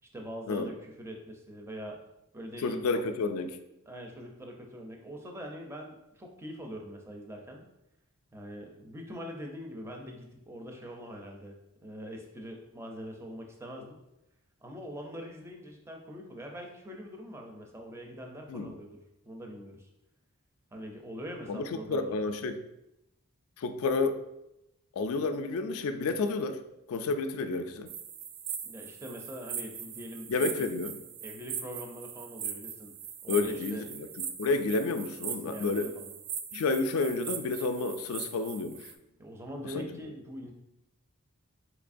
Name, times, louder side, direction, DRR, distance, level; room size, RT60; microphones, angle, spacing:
voice 1, 0.1-2.0 2.3-3.0 3.9-7.7 8.3-11.6 11.8-14.0 14.6-19.0 19.3-19.9 20.7-22.2 28.6-30.7 31.2-33.0 33.2-33.8 35.4-36.1 39.2-40.5, equal, 10° right, 1 dB, 0.4 m, -43 dB
voice 2, 2.6-3.6 18.5-18.7 21.5-21.6 21.9-22.6 23.6-24.2 24.9-26.6 26.9-27.9 30.3-31.0 33.3-34.1 34.4-35.9 36.5-38.9 39.7-39.9, left 3 dB, 65° left, 8 dB, 0.3 m, -30 dB
sound 1, 27.9-38.9, right 8 dB, 75° right, 0.4 m, -40 dB
4.1 x 2.9 x 2.5 m, 0.88 s
head